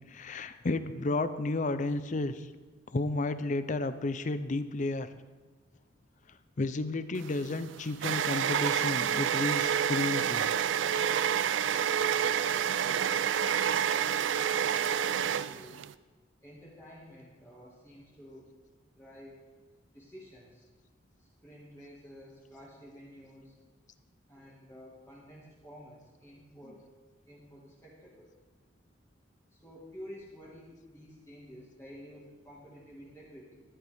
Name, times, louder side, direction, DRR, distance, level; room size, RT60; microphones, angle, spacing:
voice 1, 0.1-2.5 2.9-5.1 6.6-10.4, left 2 dB, 40° left, 12 dB, 0.5 m, -32 dB
sound 1, 7.2-15.9, right 9 dB, 75° right, 0.4 m, -28 dB
voice 2, 12.2-15.8 16.4-18.5 19.0-19.4 19.9-20.6 21.2-23.5 24.3-26.8 27.3-28.3 29.5-33.6, equal, 15° left, -7 dB, 1.9 m, -51 dB
13.5 x 11.0 x 3.5 m, 1.3 s
head